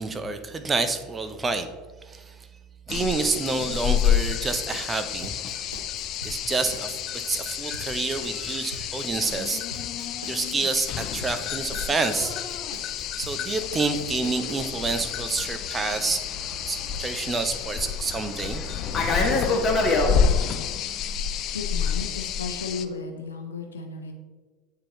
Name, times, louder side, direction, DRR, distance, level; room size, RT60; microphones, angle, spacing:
voice 1, 0.0-1.7 2.0-2.5 2.9-5.7 6.2-9.9 10.3-12.3 13.2-16.3 16.7-19.0, right 4 dB, 20° right, 9 dB, 0.5 m, -28 dB
sound 1, 2.9-22.9, left 8 dB, 45° left, 0.3 m, -29 dB
sound 2, 3.3-14.5, right 2 dB, 85° right, 0.6 m, -43 dB
Fixed-wing aircraft airplane, 13.6-20.1, left 2 dB, 25° left, 1.1 m, -28 dB
voice 2, 21.5-24.1, left 4 dB, 80° left, 3 dB, 0.8 m, -34 dB
8.5 x 3.7 x 3.1 m, 1.4 s
figure-of-eight pair, 75°, 0 cm